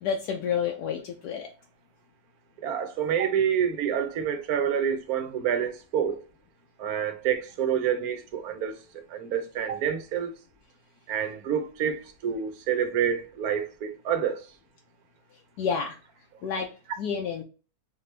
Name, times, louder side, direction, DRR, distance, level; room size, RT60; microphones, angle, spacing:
voice 1, 0.0-1.5 15.6-16.0 16.4-16.7 17.0-17.4, left 6 dB, 80° left, 1.2 m, -29 dB
voice 2, 2.6-6.2 6.8-8.7 9.1-10.3 11.1-14.4, right 8 dB, 70° right, 1.1 m, -28 dB
4.2 x 3.0 x 3.2 m
omnidirectional pair, 1.7 m